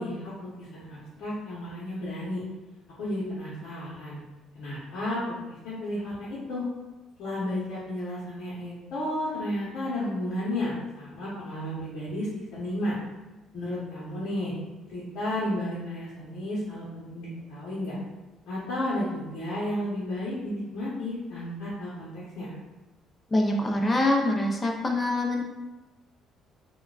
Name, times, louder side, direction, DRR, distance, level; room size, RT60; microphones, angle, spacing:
voice 1, 0.0-2.4 3.0-4.2 4.5-5.4 5.6-6.6 7.2-13.0 13.5-14.5 14.9-17.9 18.5-22.5, left 1 dB, 70° left, -8 dB, 0.8 m, -32 dB
voice 2, 23.3-25.4, left 1 dB, 25° left, 1 dB, 0.5 m, -24 dB
3.6 x 2.2 x 2.4 m, 1.1 s
cardioid pair, 100°, 0 cm